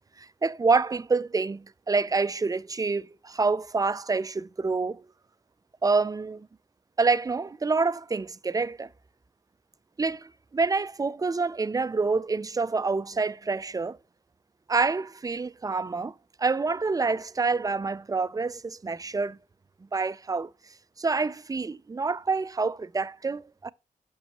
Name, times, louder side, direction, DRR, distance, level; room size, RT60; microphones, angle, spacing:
voice 1, 0.2-5.1 5.8-6.5 7.0-8.9 10.0-14.0 14.7-19.4 19.9-20.5 21.0-23.7, right 4 dB, 25° right, 0.4 m, -27 dB
6.2 x 5.4 x 3.0 m
cardioid pair, 45°, 16 cm